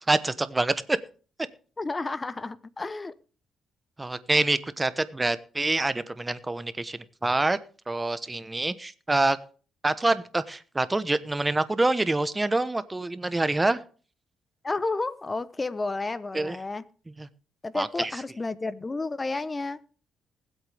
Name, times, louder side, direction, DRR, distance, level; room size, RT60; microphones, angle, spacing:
voice 1, 0.1-1.0 4.0-7.6 7.9-9.4 9.8-13.8 16.3-16.6 17.2-17.3 17.7-18.1, right 2 dB, 15° right, 14 dB, 1.0 m, -26 dB
voice 2, 1.8-3.1 14.6-16.8 17.6-19.8, left 3 dB, 25° left, 16 dB, 0.9 m, -31 dB
20.0 x 8.1 x 3.5 m, 0.38 s
cardioid pair, 90°, 0 cm